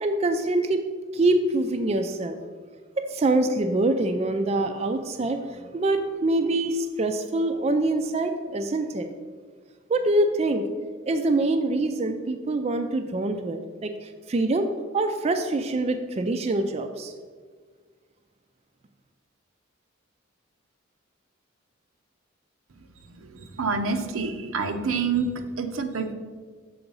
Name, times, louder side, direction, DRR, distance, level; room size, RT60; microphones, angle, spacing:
voice 1, 0.0-0.8 1.1-2.4 3.0-5.4 5.7-9.1 9.9-10.6 11.1-13.9 14.3-14.7 14.9-17.1, right 2 dB, 30° right, 7 dB, 0.3 m, -24 dB
voice 2, 23.1-26.1, right 4 dB, 85° right, 7 dB, 0.6 m, -28 dB
7.0 x 3.8 x 5.4 m, 1.6 s
head